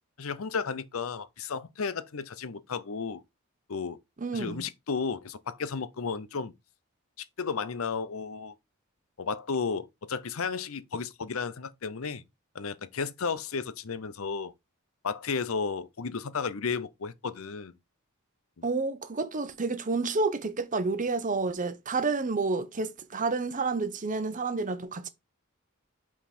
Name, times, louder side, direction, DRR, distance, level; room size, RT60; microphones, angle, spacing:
voice 1, 0.2-3.2 3.7-4.0 4.3-6.5 7.4-8.5 9.2-12.2 12.5-14.5 15.0-17.7 18.6-18.7, left 5 dB, 70° left, 0.7 m, -33 dB
voice 2, 4.2-4.6 18.6-25.1, right 3 dB, 40° right, 0.9 m, -30 dB
5.8 x 4.7 x 4.3 m
head